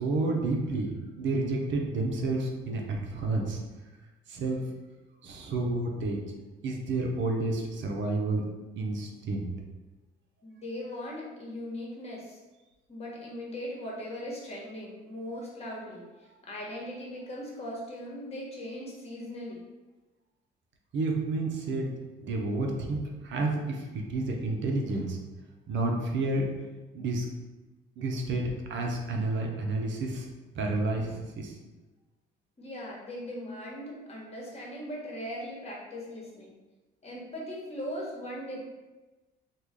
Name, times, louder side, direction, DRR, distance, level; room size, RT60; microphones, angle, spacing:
voice 1, 0.0-3.6 4.3-4.7 5.2-6.2 6.6-8.4 8.8-9.5 20.9-25.2 25.7-26.5 26.9-27.3 28.0-30.3 30.5-31.5, right 2 dB, 65° right, 1 dB, 0.7 m, -30 dB
voice 2, 10.4-12.4 12.9-16.0 16.4-19.6 32.6-36.5 37.0-38.6, left 1 dB, 30° left, -4 dB, 1.3 m, -39 dB
3.1 x 2.4 x 3.6 m, 1.2 s
supercardioid pair, 80°, 21 cm